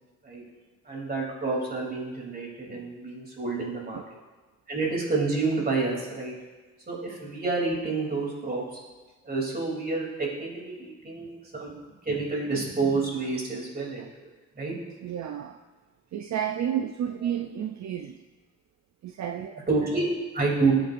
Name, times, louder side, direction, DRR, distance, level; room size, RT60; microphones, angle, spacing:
voice 1, 0.8-4.0 4.7-6.3 6.9-8.6 9.2-11.8 12.0-14.1 14.6-14.7 19.7-20.7, right 3 dB, 35° right, -2 dB, 3.1 m, -28 dB
voice 2, 15.0-15.6 16.1-18.2 19.0-19.6, right 9 dB, 70° right, 5 dB, 0.5 m, -31 dB
18.5 x 8.0 x 2.6 m, 1.3 s
wide cardioid pair, 115°, 29 cm